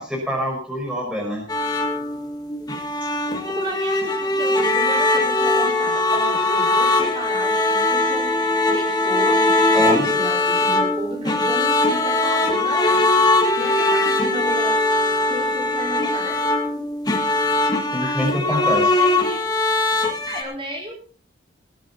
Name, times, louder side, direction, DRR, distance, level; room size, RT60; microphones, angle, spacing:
voice 1, 0.0-1.4 9.7-10.1 17.9-18.8, equal, 5° right, -1 dB, 5.4 m, -25 dB
sound 1, 1.5-20.4, left 2 dB, 20° left, 1.8 m, -20 dB
voice 2, 3.5-8.4 8.7-14.8 15.3-16.5 18.0-18.2 18.5-19.5 20.2-21.0, equal, 25° right, -2 dB, 4.8 m, -33 dB
19.5 x 10.5 x 4.2 m, 0.40 s
head